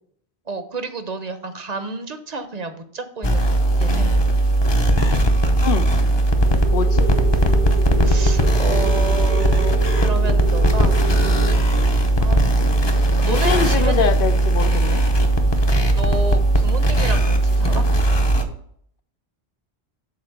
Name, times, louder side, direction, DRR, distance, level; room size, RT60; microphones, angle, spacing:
voice 1, 0.5-4.1 8.0-11.1 12.2-12.6 13.2-14.1 16.0-17.9, right 3 dB, 40° right, 9 dB, 0.8 m, -30 dB
sound 1, 3.2-18.5, right 1 dB, 30° left, 0.7 m, -18 dB
sound 2, 6.5-11.5, right 3 dB, 85° right, 2.1 m, -30 dB
voice 2, 6.7-7.1 13.3-15.0, left 7 dB, 65° left, 10 dB, 0.7 m, -24 dB
7.1 x 4.1 x 6.4 m, 0.66 s
omnidirectional pair, 1.1 m